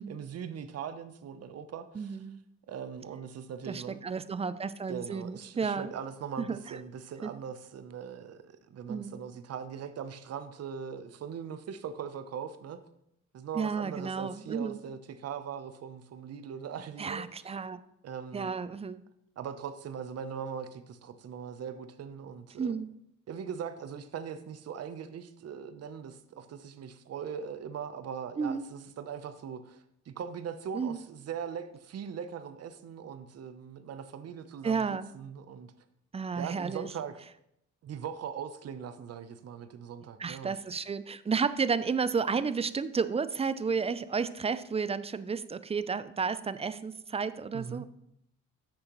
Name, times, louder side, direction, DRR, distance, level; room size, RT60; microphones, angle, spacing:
voice 1, 0.0-2.2 2.7-4.0 4.9-12.8 13.3-17.5 18.0-18.5 19.4-22.8 23.3-35.7 36.3-37.2 37.8-40.6 47.5-47.9, right 7 dB, 55° right, 11 dB, 0.8 m, -40 dB
voice 2, 1.9-2.4 3.6-5.9 6.4-6.8 7.2-7.3 8.9-9.1 13.5-14.8 17.0-17.8 18.3-19.0 22.6-22.9 28.4-28.7 30.7-31.0 34.6-35.1 36.1-36.9 40.2-47.9, right 5 dB, 20° right, 14 dB, 0.4 m, -32 dB
9.7 x 6.4 x 3.0 m, 0.76 s
cardioid pair, 90°, 30 cm